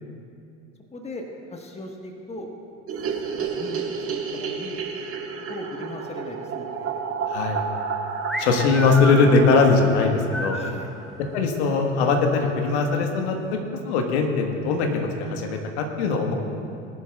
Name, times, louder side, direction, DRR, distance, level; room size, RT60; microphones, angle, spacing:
voice 1, 0.9-2.5 3.4-4.8 5.1-7.6 10.5-10.9, left 1 dB, 20° left, 2 dB, 1.4 m, -38 dB
sound 1, 2.9-11.1 11.4-11.5 11.7-11.8 12.1-12.2 12.4-12.9, right 5 dB, 40° right, 1.7 m, -31 dB
voice 2, 7.3-7.6 8.4-10.6 11.3-13.3 13.8-16.3, left 4 dB, 70° left, 3 dB, 1.6 m, -20 dB
sound 2, 8.3-10.8, equal, ahead, 0.8 m, -31 dB
20.5 x 11.0 x 2.4 m, 2.6 s
hypercardioid pair, 70°, 35 cm